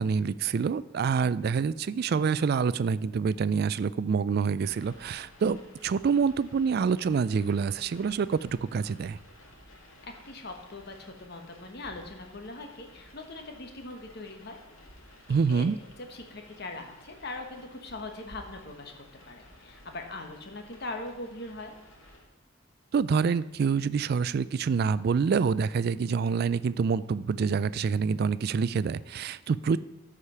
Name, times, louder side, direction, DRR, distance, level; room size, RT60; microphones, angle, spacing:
voice 1, 0.0-5.6 5.8-9.2 15.3-15.8 22.9-29.8, right 5 dB, 50° right, 17 dB, 0.3 m, -26 dB
sound 1, 4.6-22.2, left 1 dB, 90° left, 2.2 m, -54 dB
voice 2, 9.9-14.6 15.5-15.7 16.1-18.9 19.2-21.7, left 2 dB, 55° left, 4 dB, 1.3 m, -41 dB
13.0 x 5.0 x 5.6 m, 1.1 s
head